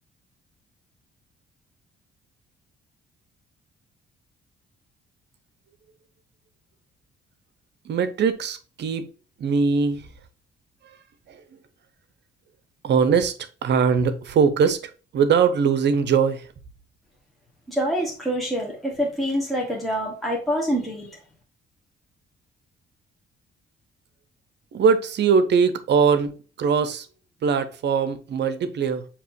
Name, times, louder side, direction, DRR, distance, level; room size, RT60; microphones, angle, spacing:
voice 1, 7.8-9.0 9.4-10.1 11.3-11.4 12.8-13.3 13.6-16.5 24.7-27.1 27.4-29.1, right 6 dB, 60° right, 0.8 m, -21 dB
voice 2, 17.7-21.2, equal, ahead, 1.4 m, -26 dB
6.7 x 3.0 x 2.6 m
cardioid pair, 90°, 20 cm